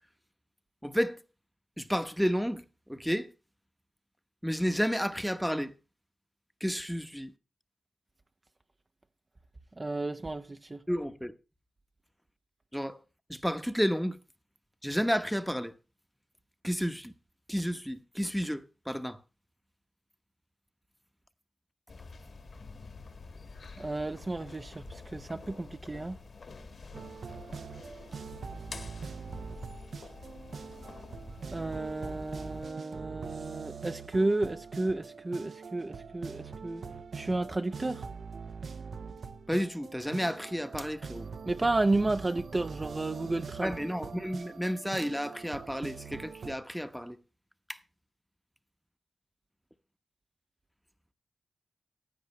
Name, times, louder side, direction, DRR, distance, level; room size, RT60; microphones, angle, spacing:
voice 1, 0.8-1.2 1.8-3.3 4.4-5.7 6.6-7.3 10.9-11.3 12.7-13.0 13.3-14.2 14.8-15.8 16.6-17.1 17.5-19.2 39.5-41.3 43.6-47.2 47.7-47.8, equal, ahead, 1.0 m, -31 dB
voice 2, 9.8-10.8 23.8-26.2 31.5-36.8 37.1-38.1 41.5-43.7, right 2 dB, 25° right, 0.6 m, -32 dB
sound 1, 21.9-32.7, left 4 dB, 55° left, 1.7 m, -48 dB
sound 2, 26.9-46.6, right 5 dB, 65° right, 0.9 m, -43 dB
15.5 x 9.7 x 3.1 m
cardioid pair, 80°, 0 cm